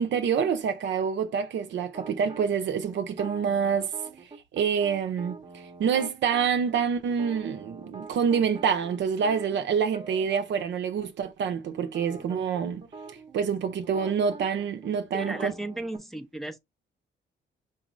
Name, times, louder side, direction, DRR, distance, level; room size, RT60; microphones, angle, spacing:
voice 1, 0.0-3.9 4.5-12.9 13.3-15.5, right 7 dB, 65° right, 0.7 m, -27 dB
sound 1, 1.9-2.5 3.1-6.5 7.1-10.7 11.0-11.1 11.4-16.0, right 3 dB, 30° right, 0.8 m, -45 dB
voice 2, 15.1-16.6, right 1 dB, ahead, 0.6 m, -35 dB
4.1 x 3.1 x 2.5 m
cardioid pair, 90°, 20 cm